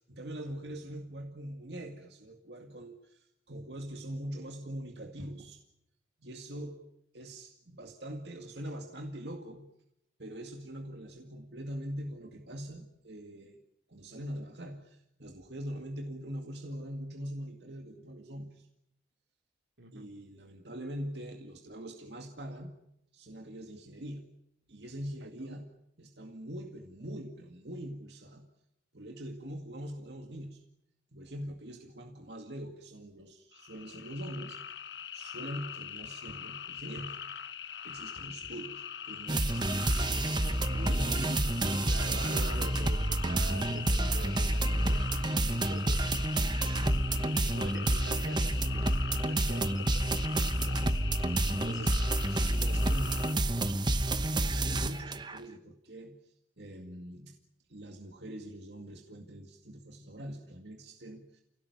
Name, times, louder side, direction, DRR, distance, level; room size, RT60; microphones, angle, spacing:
voice 1, 0.1-5.6 6.2-6.8 7.1-9.7 10.2-13.6 13.9-18.7 19.9-22.8 23.1-24.3 24.7-28.5 28.9-30.6 31.1-34.6 35.1-37.2 37.8-39.7 40.4-41.8 43.5-43.6 48.2-48.3 50.6-50.9 51.4-53.4 54.4-57.4 57.7-61.4, equal, 65° right, 4 dB, 2.2 m, -43 dB
voice 2, 19.8-20.1 25.2-25.5 41.9-46.3 46.7-50.2, right 2 dB, 90° right, 4 dB, 3.9 m, -46 dB
sound 1, 33.5-53.3, left 8 dB, 75° left, 1.2 m, -42 dB
sound 2, 39.3-55.4, right 1 dB, 25° right, 1.0 m, -29 dB
29.5 x 17.0 x 9.7 m, 0.81 s
head